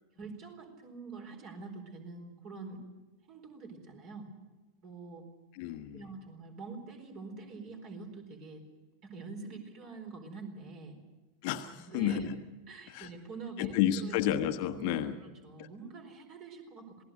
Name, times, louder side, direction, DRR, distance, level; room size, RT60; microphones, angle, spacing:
voice 1, 0.2-2.8 3.3-4.3 4.8-5.3 5.9-8.7 9.0-11.0 11.8-12.3 12.7-14.2 14.8-17.0, right 4 dB, 40° right, 5 dB, 4.4 m, -45 dB
voice 2, 5.5-6.0 11.4-12.3 12.9-13.1 13.6-15.2 15.6-15.7, left 11 dB, 45° left, 7 dB, 1.2 m, -31 dB
27.0 x 19.0 x 6.6 m, 1.2 s
figure-of-eight pair, 90°, 0 cm